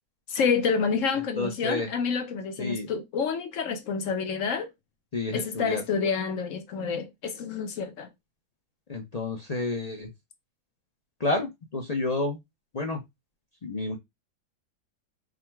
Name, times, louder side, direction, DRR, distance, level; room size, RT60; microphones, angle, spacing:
voice 1, 0.3-4.7 5.3-8.1, left 5 dB, 65° left, 1.0 m, -28 dB
voice 2, 1.4-1.9 2.6-2.9 5.1-5.8 8.9-10.1 11.2-12.4 12.7-13.0 13.6-14.0, left 2 dB, 45° left, 0.5 m, -30 dB
3.7 x 2.1 x 4.4 m
omnidirectional pair, 1.6 m